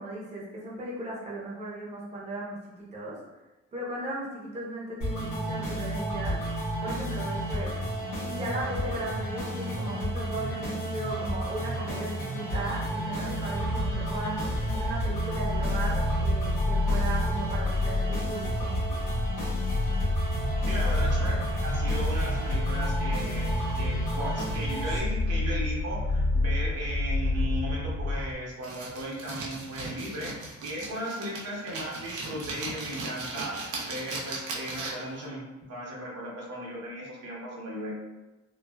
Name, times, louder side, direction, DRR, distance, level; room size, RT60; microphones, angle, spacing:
voice 1, 0.0-3.2 3.7-6.4 6.8-7.8 8.3-14.4 14.7-18.8, right 1 dB, 25° right, -5 dB, 0.8 m, -36 dB
sound 1, 5.0-25.0, right 1 dB, 85° left, 1.1 m, -32 dB
sound 2, 12.7-28.3, left 2 dB, 35° left, 0.4 m, -29 dB
voice 2, 20.6-35.4 35.7-37.9, equal, 55° right, -4 dB, 0.9 m, -36 dB
sound 3, 28.6-35.2, right 3 dB, 85° right, 0.7 m, -38 dB
3.2 x 2.3 x 2.2 m, 1.1 s
cardioid pair, 90°, 30 cm